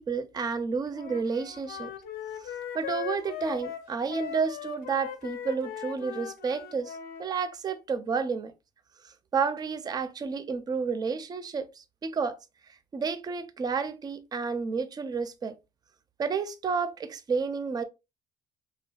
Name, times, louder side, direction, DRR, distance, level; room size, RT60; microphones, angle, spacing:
voice 1, 0.0-1.9 2.4-8.5 9.0-12.4 12.9-15.6 16.2-17.8, right 5 dB, 25° right, 0.4 m, -31 dB
Wind instrument woodwind instrument, 0.9-7.3, left 10 dB, 65° left, 0.5 m, -39 dB
3.3 x 2.2 x 2.2 m
cardioid pair, 110°, 17 cm